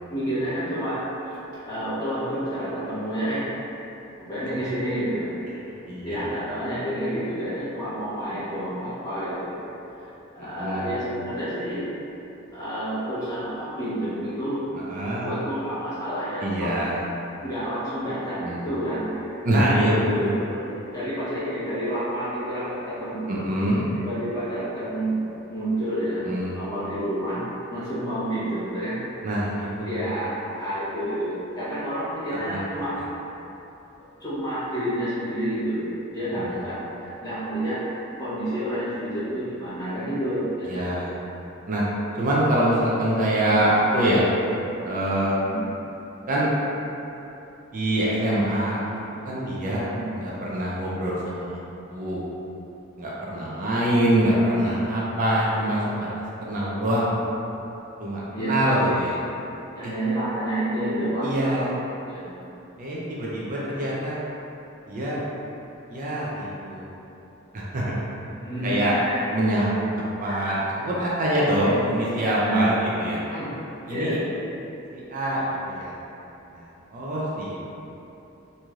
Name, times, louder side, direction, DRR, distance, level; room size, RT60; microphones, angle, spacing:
voice 1, 0.1-1.0 1.6-3.5 4.2-5.3 6.0-9.6 10.3-11.8 12.5-14.6 15.2-16.9 17.4-19.3 19.8-20.6 20.9-23.5 23.9-25.2 25.5-26.2 26.5-27.4 27.7-29.0 29.8-33.0 34.2-35.9 36.1-37.8 38.2-40.8 45.4-45.7 49.8-50.0 58.3-58.5 59.7-61.5 62.0-62.2 68.4-69.2 70.2-70.4 72.4-72.7 73.3-73.5 73.9-74.2, right 1 dB, 15° left, -13 dB, 0.9 m, -29 dB
voice 2, 10.4-10.9 14.7-15.3 16.4-17.0 18.4-18.7 19.4-20.4 23.3-23.8 26.2-26.5 29.2-30.0 32.3-32.6 33.0-33.1 36.3-36.6 40.7-41.1 41.7-41.8 42.2-44.2 44.8-45.4 46.3-46.5 47.7-48.8 49.2-49.9 50.2-51.5 51.9-52.2 53.0-57.2 58.0-59.2 59.8-59.9 61.2-61.7 62.8-64.2 64.9-65.2 65.9-66.8 67.5-68.0 68.6-68.9 69.3-69.8 70.2-73.2 73.9-74.2 74.9-75.9 76.5-77.6, right 1 dB, 40° right, -6 dB, 0.4 m, -24 dB
3.1 x 2.7 x 2.3 m, 2.9 s
head